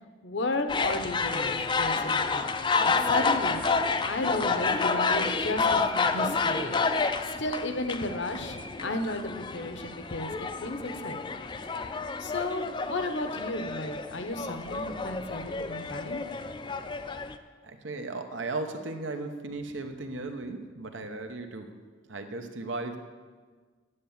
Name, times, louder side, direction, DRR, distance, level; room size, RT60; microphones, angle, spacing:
voice 1, 0.2-2.5 2.8-3.6 4.0-6.8 7.2-11.4 11.7-16.6, left 2 dB, 70° left, 7 dB, 1.0 m, -34 dB
sound 1, 0.7-17.3, left 4 dB, 25° left, 0.4 m, -29 dB
voice 2, 17.6-21.8 22.1-23.0, right 3 dB, 85° right, 6 dB, 1.0 m, -36 dB
9.8 x 8.2 x 7.2 m, 1.5 s
head